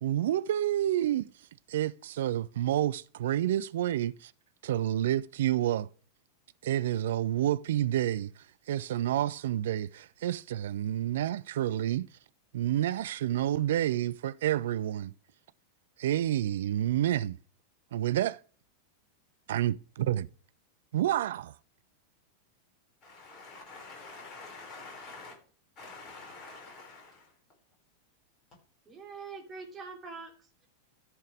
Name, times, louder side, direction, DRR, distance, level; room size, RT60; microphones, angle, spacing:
voice 1, 0.0-1.3 1.7-4.3 4.6-5.9 6.6-8.3 8.7-12.0 12.5-15.1 16.0-17.3 17.9-18.4 19.5-20.3 20.9-21.5, right 12 dB, 60° right, 0.4 m, -29 dB
voice 2, 23.0-25.4 25.8-27.3, left 3 dB, 30° left, 5.1 m, -47 dB
voice 3, 28.8-30.7, right 4 dB, 20° right, 2.9 m, -44 dB
14.0 x 5.5 x 3.3 m
figure-of-eight pair, 90°, 0 cm